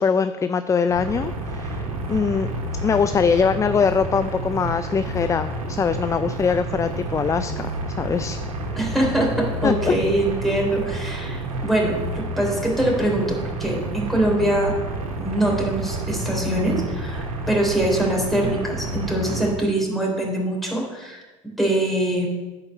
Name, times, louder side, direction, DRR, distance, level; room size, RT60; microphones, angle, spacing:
voice 1, 0.0-2.5 2.8-7.7 8.0-8.4 9.6-10.0, left 6 dB, 20° left, 11 dB, 0.4 m, -22 dB
sound 1, 0.9-19.5, right 2 dB, 85° right, 1.3 m, -30 dB
voice 2, 8.8-14.7 15.2-21.2 21.6-22.3, right 1 dB, ahead, -2 dB, 3.3 m, -23 dB
8.9 x 4.8 x 7.1 m, 1.2 s
hypercardioid pair, 80°, 17 cm